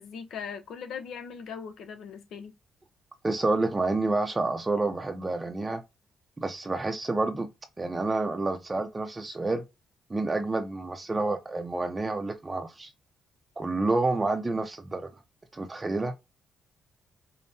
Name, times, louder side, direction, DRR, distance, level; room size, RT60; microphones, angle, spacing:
voice 1, 0.0-2.5, left 6 dB, 75° left, 0.7 m, -39 dB
voice 2, 3.2-5.8 6.4-7.5 7.8-9.6 10.1-12.9 13.6-15.1 15.5-16.2, right 2 dB, 20° right, 0.5 m, -29 dB
5.3 x 2.1 x 2.7 m
cardioid pair, 90°, 0 cm